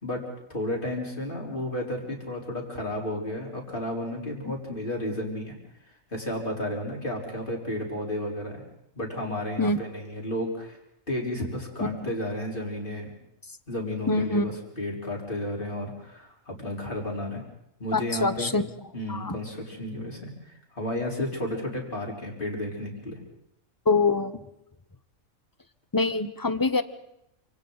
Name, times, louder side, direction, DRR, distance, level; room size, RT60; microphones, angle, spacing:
voice 1, 0.5-5.5 5.9-8.6 8.9-10.8 11.1-13.1 13.7-17.4 17.8-18.5 18.9-23.2, left 1 dB, 40° left, -1 dB, 4.3 m, -32 dB
voice 2, 11.8-12.1 14.1-14.6 17.9-18.7 19.1-19.4 23.9-24.4 25.9-26.8, left 3 dB, 20° left, 12 dB, 0.7 m, -25 dB
28.5 x 26.0 x 4.0 m, 0.79 s
omnidirectional pair, 1.4 m